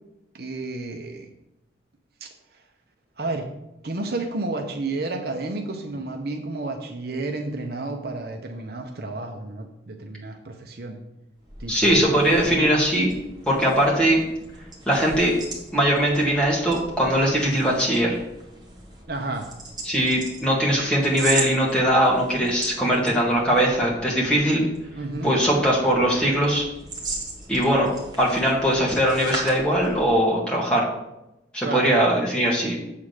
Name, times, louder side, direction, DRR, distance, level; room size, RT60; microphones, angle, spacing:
voice 1, 0.3-1.3 2.2-2.3 3.2-3.5 3.8-11.0 11.6-12.8 19.1-19.5 25.0-25.3 31.6-31.9, right 2 dB, 55° right, 3 dB, 0.8 m, -31 dB
sound 1, 11.4-30.3, right 2 dB, 20° right, 1.4 m, -38 dB
voice 2, 11.7-13.1 13.5-14.3 14.9-15.3 15.7-18.2 19.8-24.6 25.2-26.6 27.5-27.9 28.2-30.9 31.5-32.8, equal, 5° left, -5 dB, 1.8 m, -20 dB
7.4 x 3.7 x 6.5 m, 0.90 s
head